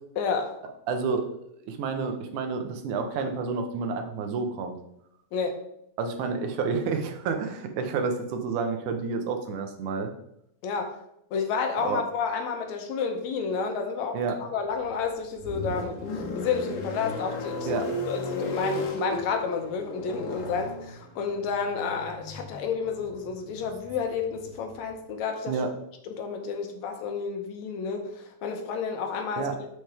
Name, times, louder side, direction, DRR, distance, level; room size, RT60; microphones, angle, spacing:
voice 1, 0.2-0.6 5.3-5.6 10.6-11.0 11.3-25.7 26.1-29.7, left 5 dB, 75° left, 5 dB, 2.1 m, -31 dB
voice 2, 0.9-1.3 1.7-4.8 6.0-10.1 11.8-12.0 14.1-14.4 17.7-17.9 25.5-25.7 29.4-29.6, right 5 dB, 85° right, 6 dB, 2.4 m, -29 dB
sound 1, 14.7-24.9, left 2 dB, 60° left, 1.7 m, -36 dB
11.0 x 4.7 x 3.4 m, 0.77 s
omnidirectional pair, 3.4 m